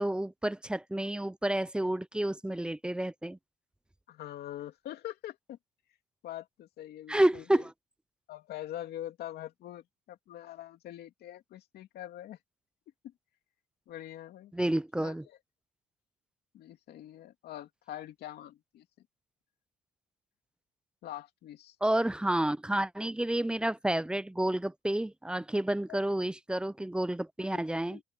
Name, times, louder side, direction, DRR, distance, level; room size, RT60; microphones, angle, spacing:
voice 1, 0.0-3.4 7.1-7.7 14.5-15.2 21.8-28.0, right 1 dB, 5° right, 0.6 m, -30 dB
voice 2, 4.1-5.6 6.2-7.7 8.3-12.4 13.0-13.1 13.9-14.5 15.0-15.4 16.5-18.9 21.0-21.8 25.9-26.0 27.5-27.6 27.9-28.0, left 13 dB, 70° left, 2.7 m, -44 dB
open air
cardioid pair, 110°, 17 cm